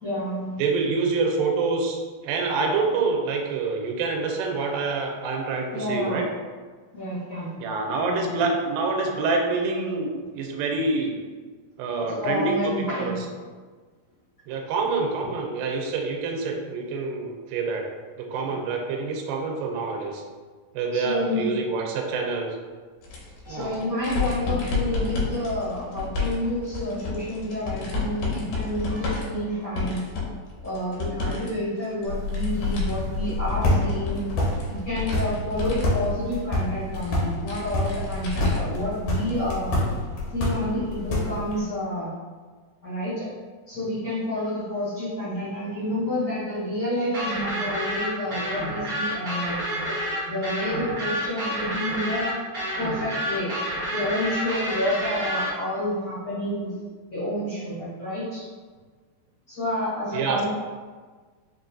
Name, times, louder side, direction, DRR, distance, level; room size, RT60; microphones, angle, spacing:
voice 1, 0.0-0.6 5.7-6.2 6.9-7.5 8.0-8.4 12.0-13.2 20.9-21.5 23.4-30.0 30.6-34.2 34.7-39.8 40.3-42.1 42.8-43.3 43.7-49.9 50.3-52.3 52.8-53.5 53.9-56.7 57.1-58.4 59.5-60.5, left 1 dB, 50° left, -12 dB, 1.2 m, -29 dB
voice 2, 0.6-6.2 7.6-11.2 11.8-13.2 14.5-17.8 18.2-20.2 20.7-22.5 23.5-23.8 60.1-60.5, right 4 dB, 80° right, 1 dB, 2.1 m, -26 dB
sound 1, 23.0-31.5 31.8-38.8 39.2-39.3 40.5-40.6, left 3 dB, 85° left, 2.6 m, -31 dB
sound 2, 32.1-41.6, left 1 dB, 70° left, 1.8 m, -28 dB
sound 3, 47.1-55.5, equal, 65° right, 0.9 m, -29 dB
5.7 x 2.6 x 2.3 m, 1.5 s
omnidirectional pair, 4.0 m